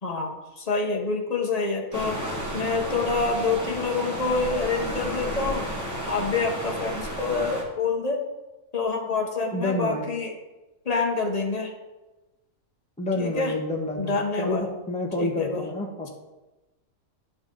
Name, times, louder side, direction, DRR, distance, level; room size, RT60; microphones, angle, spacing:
voice 1, 0.0-2.2 2.5-5.7 6.1-8.2 8.7-10.3 10.8-11.7 13.2-13.5 14.0-14.7 15.2-15.7, left 4 dB, 30° left, 1 dB, 1.0 m, -27 dB
sound 1, 1.9-7.6, equal, 10° right, 1.3 m, -32 dB
voice 2, 9.5-10.1 13.0-16.1, left 2 dB, 5° left, -1 dB, 0.9 m, -29 dB
11.0 x 4.0 x 3.8 m, 1.1 s
omnidirectional pair, 1.6 m